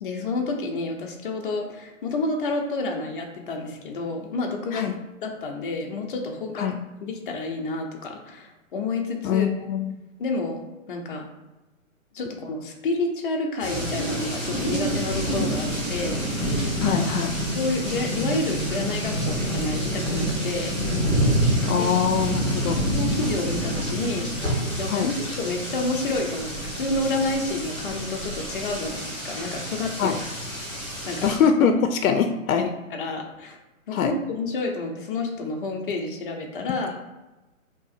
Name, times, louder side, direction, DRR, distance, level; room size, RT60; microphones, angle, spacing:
voice 1, 0.0-4.9 5.2-6.7 7.0-9.5 10.2-10.6 10.9-11.3 12.1-17.0 17.5-20.7 21.8-21.9 22.9-30.2 30.6-30.7 31.0-31.3 32.1-32.2 32.6-33.6 33.9-37.0, left 3 dB, 40° left, 2 dB, 0.6 m, -29 dB
voice 2, 9.2-10.0 16.8-17.4 21.6-22.8 24.9-25.1 30.0-30.2 31.2-32.6 33.9-34.1, left 7 dB, 85° left, 6 dB, 0.5 m, -23 dB
sound 1, 13.6-31.4, right 1 dB, ahead, 0.4 m, -27 dB
4.6 x 2.8 x 2.4 m, 1.1 s
hypercardioid pair, 155°, 41 cm